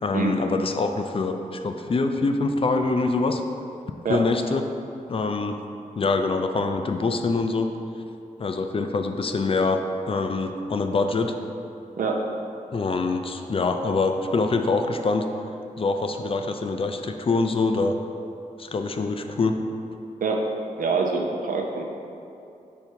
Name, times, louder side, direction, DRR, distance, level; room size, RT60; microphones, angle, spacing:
voice 1, 0.0-3.4 4.1-4.6 5.1-5.6 6.0-7.7 8.4-9.8 10.1-11.4 12.7-15.3 15.8-17.9 18.6-19.6, left 3 dB, 40° left, 6 dB, 0.4 m, -24 dB
voice 2, 20.8-21.8, right 4 dB, 75° right, 2 dB, 0.7 m, -25 dB
5.3 x 4.7 x 4.5 m, 2.7 s
wide cardioid pair, 120°, 14 cm